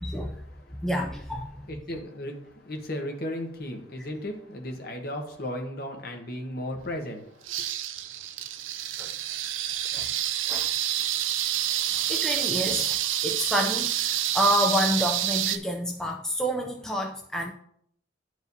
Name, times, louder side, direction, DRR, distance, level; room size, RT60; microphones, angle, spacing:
voice 1, 0.0-0.4 0.8-1.5 1.9-2.0 9.0-9.1 9.9-10.1 10.5-10.7 11.8-13.0 13.2-17.5, equal, 5° left, 2 dB, 0.4 m, -28 dB
voice 2, 1.7-7.6 12.7-12.8, left 1 dB, 50° left, 3 dB, 1.1 m, -35 dB
sound 1, 7.5-15.6, right 11 dB, 80° right, 0.4 m, -28 dB
11.0 x 4.8 x 2.7 m, 0.66 s
head